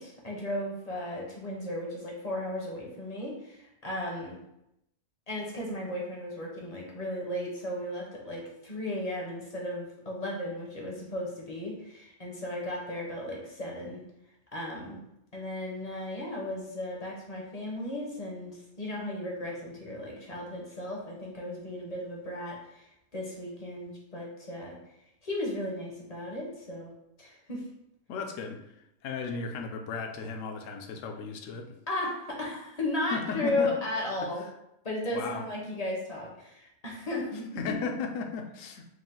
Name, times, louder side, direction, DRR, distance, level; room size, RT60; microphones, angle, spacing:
voice 1, 0.0-4.4 5.3-14.0 14.5-15.0 15.3-24.8 25.2-26.9 27.2-27.6 31.9-34.4 34.8-37.5, left 1 dB, 35° left, -2 dB, 0.7 m, -35 dB
voice 2, 28.1-31.7 33.1-33.7 34.4-34.5 35.1-35.5 37.6-38.9, left 5 dB, 70° left, 4 dB, 0.9 m, -35 dB
4.8 x 2.1 x 3.7 m, 0.83 s
omnidirectional pair, 1.6 m